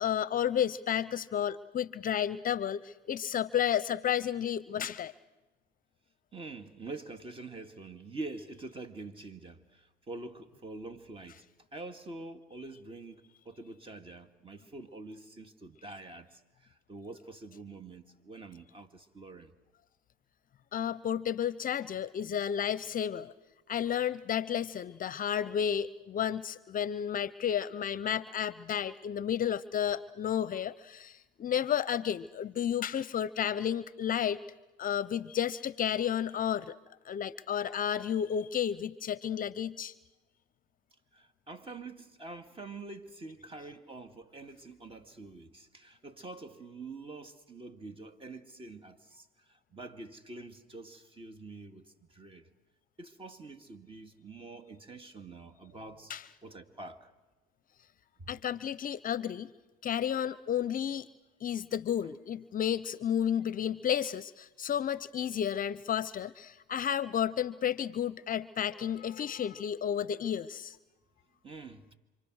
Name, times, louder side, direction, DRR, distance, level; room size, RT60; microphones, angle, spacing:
voice 1, 0.0-5.1 20.7-23.3 23.7-34.4 34.8-36.7 37.0-39.9 56.1-56.2 58.3-59.5 59.8-61.1 61.4-70.8, left 9 dB, 40° left, 0.7 m, -32 dB
voice 2, 6.3-11.4 11.7-19.5 41.1-52.5 53.0-56.1 56.4-57.1 58.2-58.4 71.4-71.9, right 3 dB, 25° right, 2.3 m, -46 dB
27.5 x 25.5 x 6.5 m
supercardioid pair, 80°, 21 cm